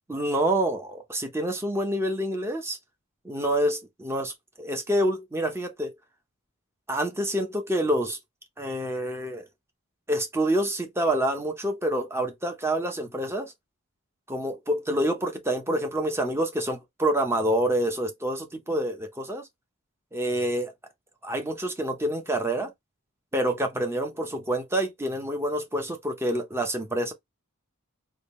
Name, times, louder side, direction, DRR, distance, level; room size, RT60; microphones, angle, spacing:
voice 1, 0.1-2.8 3.2-4.3 4.6-5.9 6.9-8.2 8.6-9.4 10.1-13.5 14.3-19.5 20.1-20.7 21.2-22.7 23.3-27.1, right 1 dB, 10° right, 0.8 m, -27 dB
3.6 x 2.3 x 3.1 m
head